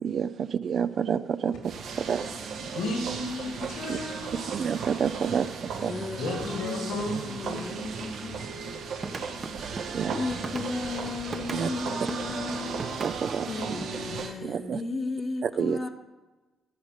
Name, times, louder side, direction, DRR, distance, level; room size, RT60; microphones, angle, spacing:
voice 1, 0.0-2.2 3.9-4.0 4.5-5.9 9.9-10.1 11.5-11.7 13.0-13.5 14.4-14.8 15.4-15.8, right 7 dB, 55° right, 14 dB, 0.5 m, -29 dB
sound 1, 1.6-14.3, right 5 dB, 75° right, 1.5 m, -36 dB
voice 2, 2.7-4.5 6.2-7.1 7.4-7.8 10.5-10.7 13.6-13.7 14.1-14.2, left 2 dB, 85° left, 1 dB, 2.6 m, -34 dB
voice 3, 5.8-8.5 9.5-13.0 13.5-15.9, left 3 dB, 35° left, 2 dB, 1.0 m, -35 dB
sound 2, 9.0-11.7 12.1-14.0, right 4 dB, 40° right, 1.0 m, -39 dB
12.5 x 5.2 x 8.0 m, 1.2 s
cardioid pair, 90°, 0 cm